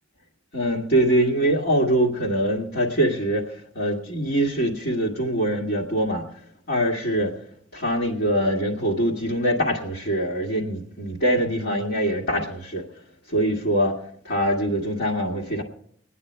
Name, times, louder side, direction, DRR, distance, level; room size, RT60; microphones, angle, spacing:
voice 1, 0.5-6.2 6.7-7.3 7.7-12.8 13.3-14.0 14.2-15.6, right 1 dB, 55° left, -3 dB, 2.0 m, -23 dB
25.5 x 9.7 x 3.4 m, 0.66 s
head